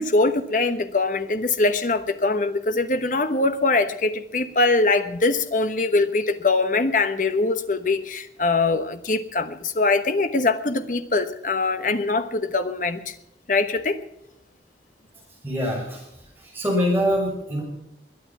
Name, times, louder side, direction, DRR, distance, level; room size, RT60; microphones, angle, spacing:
voice 1, 0.0-13.1 13.5-14.0, left 3 dB, 45° left, 1.1 m, -22 dB
voice 2, 15.4-16.1 16.4-17.6, equal, 10° right, 6.7 m, -24 dB
22.0 x 9.8 x 6.0 m
head